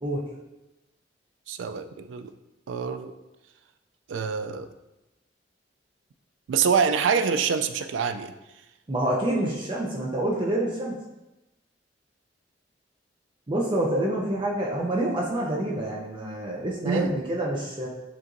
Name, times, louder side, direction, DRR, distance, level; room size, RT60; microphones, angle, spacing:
voice 1, 1.5-2.3 2.7-3.1 4.1-4.7 6.5-8.3 16.9-17.1, right 6 dB, 85° right, 9 dB, 0.3 m, -25 dB
voice 2, 8.9-11.0 13.5-17.9, right 1 dB, 25° right, -3 dB, 0.5 m, -27 dB
7.3 x 2.6 x 2.5 m, 0.99 s
head